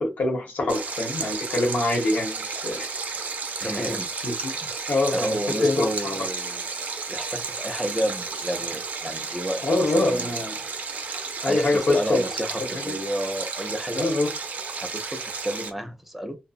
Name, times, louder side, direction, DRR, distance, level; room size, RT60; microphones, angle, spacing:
voice 1, 0.0-2.9 3.6-3.9 4.2-4.5 4.9-6.1 9.6-10.5 11.4-12.3 12.7-13.0 13.9-14.3, left 2 dB, 80° left, 1.1 m, -25 dB
Stream, 0.7-15.7, right 4 dB, 75° right, 0.6 m, -32 dB
voice 2, 3.6-4.1 5.1-6.6 7.1-10.4 11.4-14.1 14.7-16.4, equal, 5° right, 0.4 m, -31 dB
2.7 x 2.0 x 2.5 m
wide cardioid pair, 135°, 3 cm